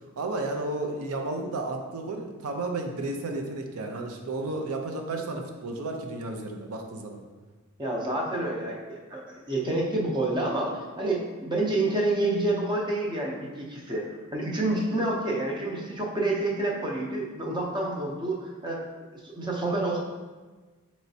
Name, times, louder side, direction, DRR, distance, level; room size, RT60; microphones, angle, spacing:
voice 1, 0.2-7.2, right 2 dB, 90° right, 3 dB, 0.5 m, -32 dB
voice 2, 7.8-18.8 19.1-20.0, right 2 dB, 20° right, -2 dB, 0.5 m, -28 dB
4.4 x 3.0 x 2.7 m, 1.3 s
head